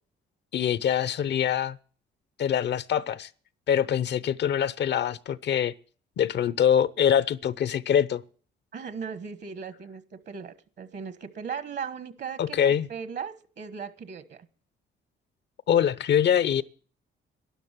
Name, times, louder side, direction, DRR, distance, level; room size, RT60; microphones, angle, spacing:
voice 1, 0.5-1.8 2.4-3.3 3.7-5.7 6.2-8.2 12.4-12.9 15.7-16.6, left 9 dB, 60° left, 0.7 m, -24 dB
voice 2, 8.7-14.5, right 6 dB, 60° right, 1.3 m, -38 dB
12.5 x 10.5 x 7.5 m
cardioid pair, 90°, 20 cm